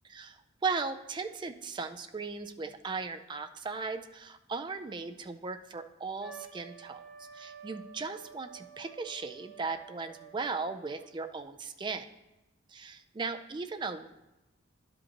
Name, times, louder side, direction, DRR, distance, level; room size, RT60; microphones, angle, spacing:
voice 1, 0.1-12.1 12.7-14.1, right 4 dB, 25° right, 8 dB, 0.3 m, -37 dB
Trumpet, 6.2-11.2, right 7 dB, 65° left, 1.8 m, -51 dB
11.0 x 5.2 x 2.9 m, 0.99 s
head